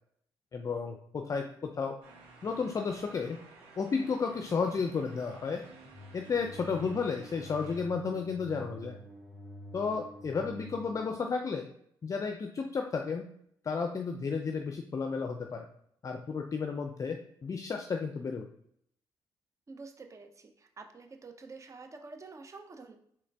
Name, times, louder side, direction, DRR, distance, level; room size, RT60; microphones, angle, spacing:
voice 1, 0.5-1.9 2.4-3.4 3.8-5.6 6.1-9.0 9.7-11.7 12.0-13.3 13.6-15.7 16.0-18.5, left 5 dB, 40° left, 4 dB, 0.4 m, -33 dB
sound 1, 2.0-7.9, right 3 dB, 85° right, 1.0 m, -54 dB
sound 2, 4.4-11.1, equal, 10° left, 1.1 m, -48 dB
voice 2, 19.7-23.0, right 3 dB, 35° right, 5 dB, 0.7 m, -48 dB
3.7 x 3.1 x 3.4 m, 0.68 s
cardioid pair, 75°, 9 cm